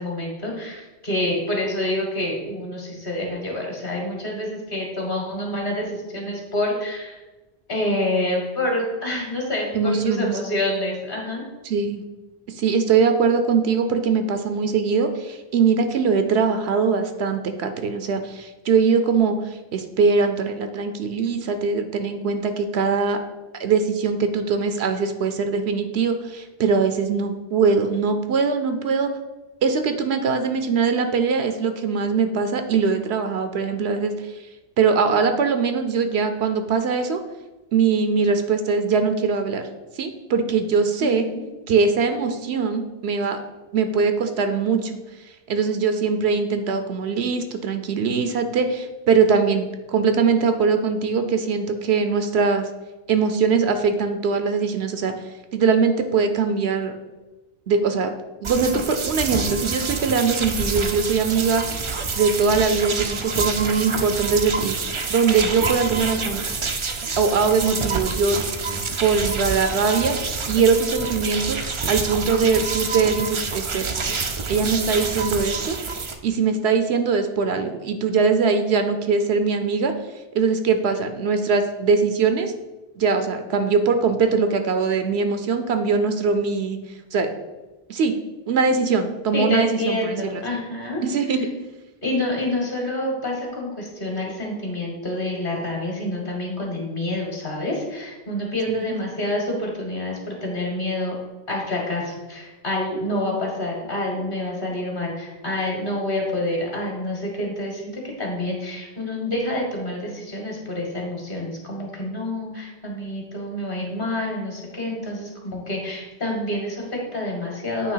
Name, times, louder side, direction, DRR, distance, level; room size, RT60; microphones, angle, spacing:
voice 1, 0.0-7.2 7.7-11.4 41.0-41.4 89.3-91.0 92.0-101.2 101.5-117.9, left 1 dB, 50° left, 0 dB, 1.9 m, -27 dB
voice 2, 9.7-10.3 11.6-12.0 12.5-23.2 23.6-29.1 29.6-34.3 34.8-37.2 37.7-39.7 40.0-41.3 41.7-43.4 43.7-44.9 45.5-52.7 53.1-55.1 55.5-56.9 57.7-58.1 58.4-64.7 65.1-66.4 67.2-68.4 69.0-70.2 70.5-73.9 74.5-75.8 76.2-79.9 80.3-82.5 83.0-86.8 87.1-87.3 87.9-88.2 88.5-90.4 91.0-91.4 98.7-98.8, right 5 dB, 70° right, 7 dB, 0.9 m, -21 dB
sound 1, 58.4-76.1, right 4 dB, 40° right, 0.4 m, -27 dB
8.4 x 3.2 x 5.6 m, 1.2 s
omnidirectional pair, 1.1 m